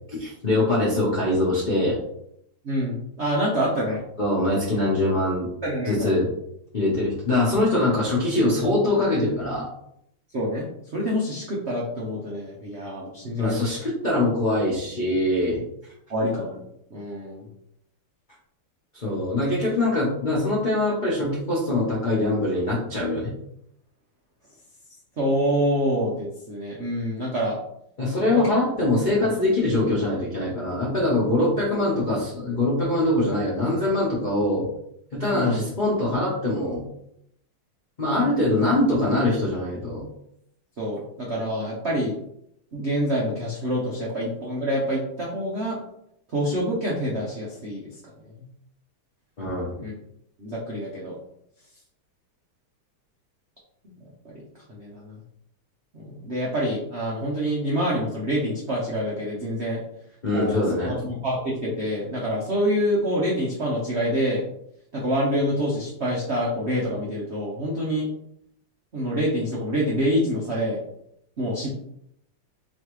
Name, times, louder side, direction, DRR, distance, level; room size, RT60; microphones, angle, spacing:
voice 1, 0.1-2.0 4.2-5.5 5.9-6.3 6.7-9.7 13.4-15.6 18.9-23.3 28.0-34.7 35.1-36.8 38.0-40.0 49.4-49.7 60.2-60.9, left 2 dB, 40° left, -7 dB, 0.7 m, -23 dB
voice 2, 2.6-4.0 5.6-6.1 10.3-13.7 16.1-16.6 16.9-17.5 25.2-27.6 35.3-35.6 40.8-42.2 42.7-45.8 46.3-48.5 49.8-49.9 50.4-51.1 53.8-55.2 55.9-59.8 60.3-64.4 64.9-68.1 68.9-70.8 71.4-71.8, equal, 75° right, -4 dB, 0.6 m, -26 dB
4.2 x 3.2 x 3.1 m, 0.74 s
omnidirectional pair, 2.4 m